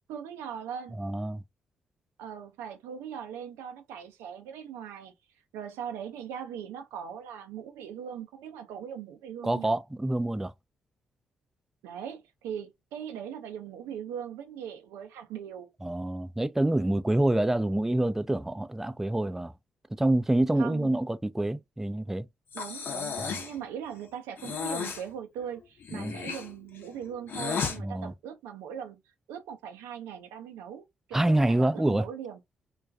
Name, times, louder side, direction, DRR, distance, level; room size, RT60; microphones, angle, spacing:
voice 1, 0.1-1.0 2.2-5.1 5.5-9.8 11.8-15.7 20.6-20.9 22.5-29.0 29.3-32.4, right 8 dB, 75° right, 0.5 m, -40 dB
voice 2, 1.0-1.4 9.4-10.5 15.8-19.5 20.0-22.3 25.9-26.1 27.8-28.1 31.1-32.1, right 1 dB, 10° right, 0.3 m, -27 dB
Breathing, 22.5-23.6 24.4-25.0 25.8-27.8, left 6 dB, 55° left, 0.7 m, -34 dB
2.3 x 2.2 x 2.5 m
hypercardioid pair, 40°, 4 cm